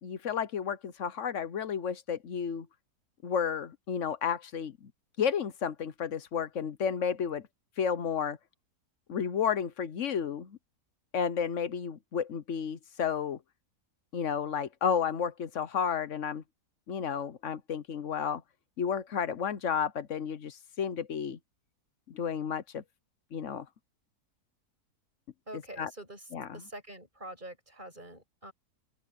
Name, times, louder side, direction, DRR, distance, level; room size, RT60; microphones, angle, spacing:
voice 1, 0.0-2.7 3.2-4.9 5.2-7.5 7.8-8.4 9.1-10.6 11.1-13.4 14.1-16.4 16.9-18.4 18.8-21.4 22.1-22.8 23.3-23.7 25.8-25.9 26.3-26.6, left 7 dB, 55° left, 1.1 m, -32 dB
voice 2, 25.5-26.3 26.5-28.5, right 1 dB, 25° right, 8.1 m, -45 dB
open air
omnidirectional pair, 1.8 m